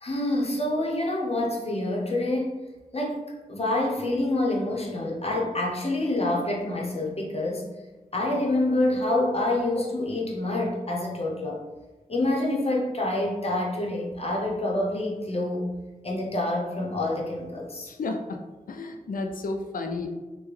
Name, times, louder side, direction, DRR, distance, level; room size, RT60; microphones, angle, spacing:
voice 1, 0.0-2.6 2.9-3.2 3.5-7.7 8.1-11.6 12.1-15.7 16.0-17.9, left 1 dB, 45° left, -2 dB, 0.8 m, -27 dB
voice 2, 17.9-18.4 18.7-20.1, left 3 dB, 75° left, 5 dB, 0.4 m, -32 dB
3.4 x 2.2 x 3.2 m, 1.2 s
cardioid pair, 45°, 15 cm